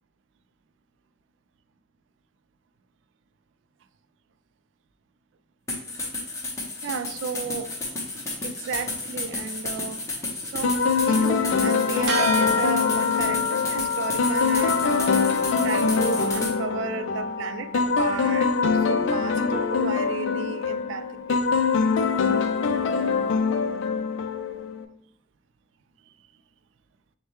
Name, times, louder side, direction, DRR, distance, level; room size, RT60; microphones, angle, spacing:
sound 1, 5.7-16.5, left 2 dB, 15° left, 0.7 m, -32 dB
voice 1, 6.8-7.7 8.4-10.0 10.5-10.8 11.1-15.2 15.6-18.5 18.9-21.4, right 6 dB, 80° right, 11 dB, 0.3 m, -33 dB
sound 2, 10.6-24.8, left 5 dB, 85° left, 0.4 m, -24 dB
sound 3, 12.1-21.9, left 5 dB, 60° right, 0.7 m, -31 dB
6.4 x 2.2 x 3.0 m, 0.67 s
head